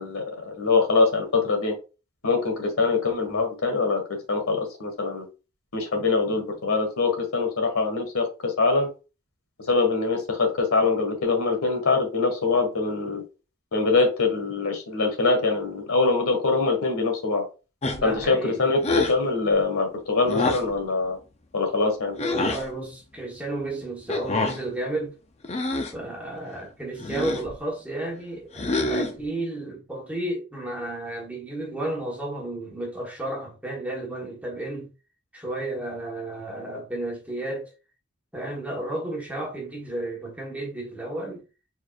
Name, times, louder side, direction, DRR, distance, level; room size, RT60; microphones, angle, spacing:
voice 1, 0.0-1.7 2.2-4.0 4.3-5.3 5.7-8.9 9.7-13.2 13.7-17.4 18.0-21.2 21.5-22.2, left 3 dB, 85° left, 1.8 m, -23 dB
sound 1, 17.8-18.2 18.8-19.2 20.3-20.7 22.2-22.6 24.1-24.6 25.4-26.0 27.0-27.5 28.5-29.2, left 2 dB, 30° left, 0.6 m, -26 dB
voice 2, 17.9-18.7 22.1-25.1 25.9-34.9 35.3-37.7 38.3-41.4, right 1 dB, 5° right, 1.2 m, -32 dB
4.6 x 4.3 x 2.4 m
head